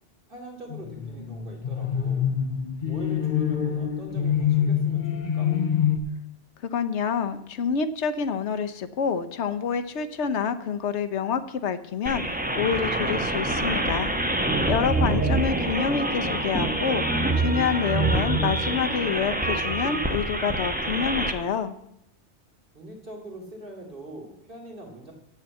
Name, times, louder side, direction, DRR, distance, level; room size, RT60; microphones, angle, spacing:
voice 1, 0.3-2.3 2.8-5.5 22.7-25.1, right 2 dB, 50° right, -1 dB, 3.0 m, -42 dB
sound 1, 0.7-6.0, left 8 dB, 45° left, 0.9 m, -26 dB
voice 2, 6.7-14.1 14.6-17.0 17.4-21.8, left 6 dB, 75° left, 11 dB, 1.1 m, -27 dB
sound 2, 12.1-21.3, right 2 dB, 10° right, 0.9 m, -26 dB
7.7 x 7.1 x 8.2 m, 0.77 s
omnidirectional pair, 1.2 m